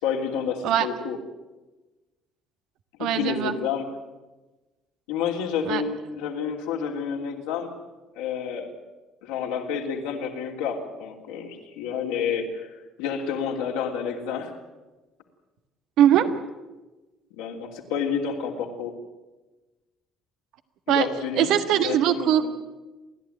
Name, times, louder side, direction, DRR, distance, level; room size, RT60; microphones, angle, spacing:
voice 1, 0.0-1.2 3.0-3.8 5.1-7.7 8.1-8.7 9.2-14.5 17.3-18.9 20.9-22.5, left 7 dB, 85° left, 0 dB, 3.2 m, -29 dB
voice 2, 3.0-3.5 5.7-5.8 16.0-16.4 20.9-21.1 21.3-22.5, right 10 dB, 70° right, 9 dB, 1.5 m, -21 dB
30.0 x 12.0 x 9.3 m, 1.1 s
hypercardioid pair, 65°, 0 cm